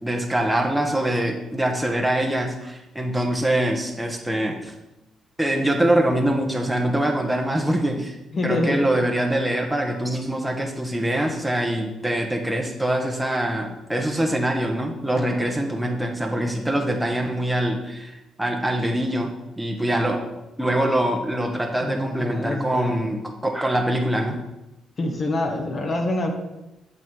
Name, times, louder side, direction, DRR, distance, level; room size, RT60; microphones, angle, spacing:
voice 1, 0.0-4.7 5.4-8.2 8.4-20.3 20.6-24.4, right 1 dB, 5° right, 1 dB, 1.0 m, -24 dB
voice 2, 8.3-8.9 21.8-23.0 25.0-26.3, left 2 dB, 40° left, 2 dB, 1.4 m, -26 dB
7.1 x 5.8 x 4.7 m, 0.97 s
cardioid pair, 90°, 0 cm